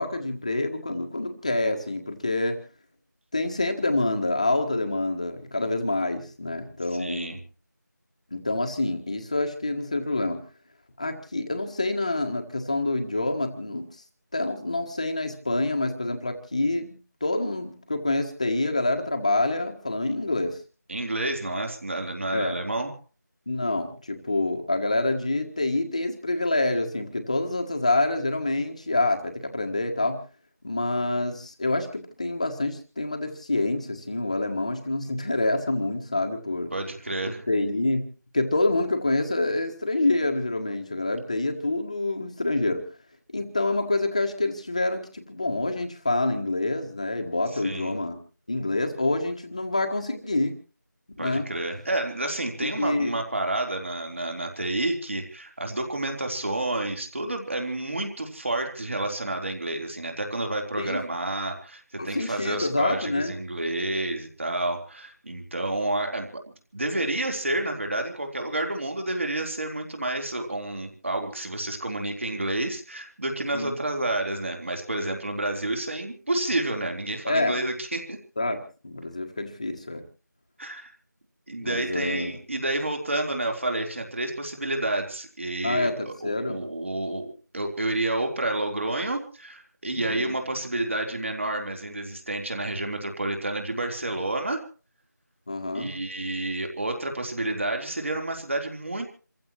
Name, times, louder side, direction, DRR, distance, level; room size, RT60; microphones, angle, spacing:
voice 1, 0.0-2.6 3.3-7.4 8.3-10.4 11.0-13.9 14.3-20.6 21.5-21.6 22.3-22.6 23.5-30.2 30.6-36.7 37.5-38.1 38.3-42.8 43.3-48.2 48.5-50.5 51.2-51.5 52.6-53.1 60.8-61.0 62.0-63.4 73.5-73.8 77.2-77.6 78.4-80.0 81.6-82.4 85.6-86.6 89.9-90.3 95.5-95.9, left 2 dB, 20° left, 5 dB, 1.5 m, -27 dB
voice 2, 6.9-7.4 20.9-22.9 36.7-37.5 47.5-48.0 51.2-66.4 66.7-78.2 80.6-80.9 81.5-94.6 95.7-99.1, right 2 dB, 40° right, 3 dB, 3.7 m, -29 dB
28.5 x 15.5 x 3.1 m, 0.38 s
figure-of-eight pair, 175°, 10 cm